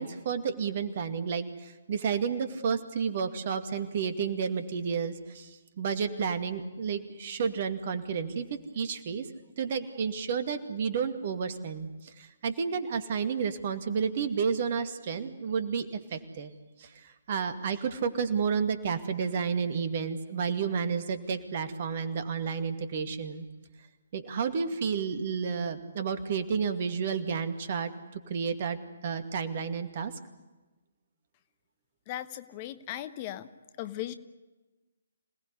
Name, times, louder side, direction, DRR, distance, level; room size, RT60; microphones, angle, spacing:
voice 1, 0.0-9.3 9.6-16.5 16.8-23.5 24.1-28.8 29.0-30.1, right 6 dB, 40° right, 10 dB, 2.2 m, -31 dB
voice 2, 32.1-33.5 33.8-34.1, left 13 dB, 30° left, 12 dB, 1.0 m, -37 dB
26.5 x 18.5 x 9.9 m, 1.2 s
figure-of-eight pair, 135°, 0 cm